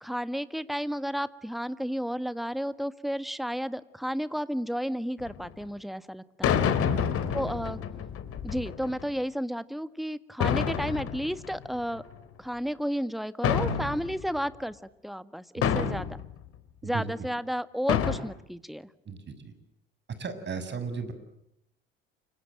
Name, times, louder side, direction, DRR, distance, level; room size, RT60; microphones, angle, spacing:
voice 1, 0.0-6.6 7.3-7.8 8.4-12.0 12.4-14.8 15.0-16.2 16.8-18.9, equal, ahead, 14 dB, 1.6 m, -32 dB
sound 1, 5.2-5.5 6.4-9.1 10.4-12.1 13.4-14.4 15.6-16.3 17.9-18.2, left 8 dB, 50° left, 3.5 m, -28 dB
voice 2, 19.0-19.5 20.2-21.1, right 5 dB, 35° right, 11 dB, 6.7 m, -35 dB
29.0 x 26.5 x 7.7 m, 0.77 s
hypercardioid pair, 65°, 30 cm